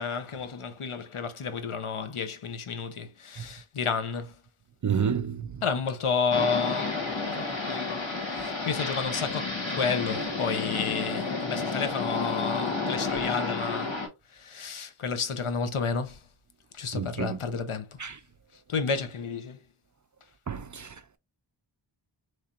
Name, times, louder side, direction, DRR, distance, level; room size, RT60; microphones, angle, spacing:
voice 1, 0.0-4.3 5.6-8.1 8.3-9.5 9.8-13.9 14.4-16.2 16.8-17.9 18.7-19.6, left 5 dB, 85° left, 0.7 m, -31 dB
voice 2, 4.8-5.6 16.9-17.4 18.0-18.2 20.5-21.2, right 7 dB, 40° right, 0.4 m, -30 dB
sound 1, 6.3-14.1, left 3 dB, 65° left, 1.5 m, -31 dB
4.2 x 3.2 x 2.5 m
wide cardioid pair, 50°, 49 cm